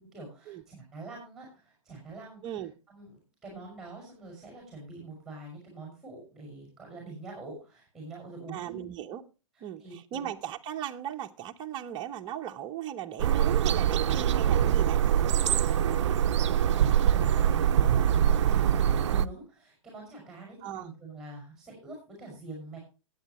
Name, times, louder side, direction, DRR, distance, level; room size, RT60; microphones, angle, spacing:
voice 1, 0.1-8.9 9.5-10.2 15.4-22.8, right 3 dB, 5° right, -1 dB, 5.8 m, -45 dB
voice 2, 8.5-9.2 9.6-15.0 20.6-20.9, right 10 dB, 30° right, 3 dB, 0.9 m, -37 dB
sound 1, 13.2-19.3, right 9 dB, 65° right, 0.6 m, -24 dB
20.0 x 8.5 x 3.0 m, 0.31 s
hypercardioid pair, 125°, 16 cm